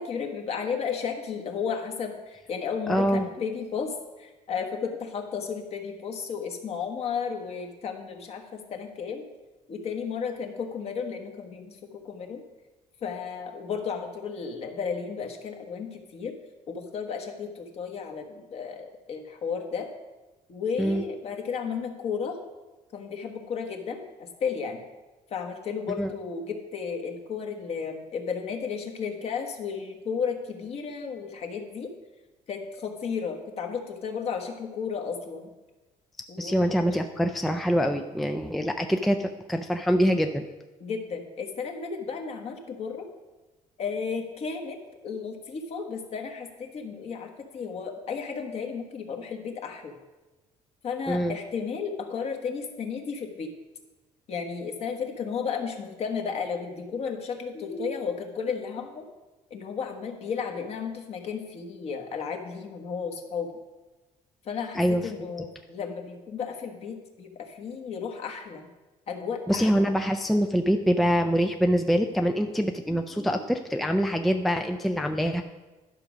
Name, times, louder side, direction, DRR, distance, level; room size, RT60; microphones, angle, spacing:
voice 1, 0.0-9.3 9.7-12.4 13.0-16.4 16.7-19.9 20.5-22.4 22.9-24.9 25.3-31.9 32.5-35.5 36.3-36.8 40.8-43.1 43.8-44.8 45.0-49.9 50.8-53.5 54.3-59.1 59.5-63.5 64.4-68.7 69.1-69.8 72.9-73.4, left 6 dB, 50° left, 4 dB, 1.3 m, -33 dB
voice 2, 2.9-3.3 20.8-21.0 26.0-26.1 36.4-40.5 51.1-51.4 64.7-65.0 69.5-75.4, equal, ahead, 5 dB, 0.4 m, -24 dB
11.5 x 6.1 x 5.1 m, 1.2 s
cardioid pair, 150°, 14 cm